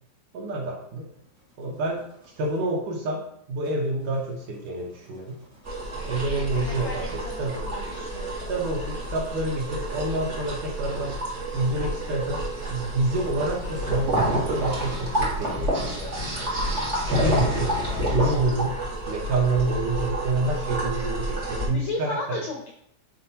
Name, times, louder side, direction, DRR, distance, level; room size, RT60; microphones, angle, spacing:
voice 1, 0.3-1.1 1.6-2.0 2.4-5.4 6.0-7.6 8.5-11.1 11.5-12.4 12.7-16.5 17.0-17.7 18.1-18.8 19.1-22.4, right 2 dB, 70° right, -2 dB, 2.2 m, -28 dB
sound 1, 0.9-2.7 3.6-10.6 11.8-19.1, left 1 dB, 40° right, 0.7 m, -47 dB
sound 2, 5.6-21.7, right 1 dB, 85° right, 0.6 m, -29 dB
voice 2, 6.5-8.5 17.9-18.3 21.7-22.7, left 2 dB, 80° left, 1 dB, 1.6 m, -35 dB
9.4 x 4.1 x 2.9 m, 0.73 s
omnidirectional pair, 4.4 m